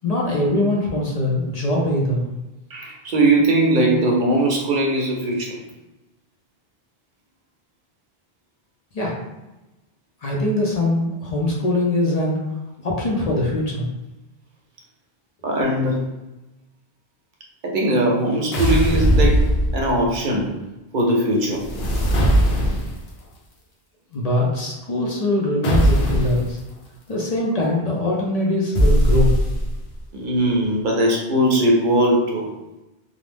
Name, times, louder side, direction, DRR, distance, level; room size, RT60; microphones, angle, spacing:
voice 1, 0.0-2.3 8.9-9.2 10.2-12.4 12.8-13.9 24.1-26.6 27.1-29.3, left 1 dB, 50° left, -3 dB, 0.5 m, -22 dB
voice 2, 2.7-5.6 15.4-16.0 17.6-20.5 20.9-21.6 30.1-32.5, right 1 dB, 60° right, -1 dB, 0.7 m, -20 dB
sound 1, 18.5-20.1 21.6-23.1 25.6-26.5 28.8-29.9, equal, 80° left, 0.9 m, -19 dB
2.5 x 2.1 x 3.2 m, 1.0 s
omnidirectional pair, 1.0 m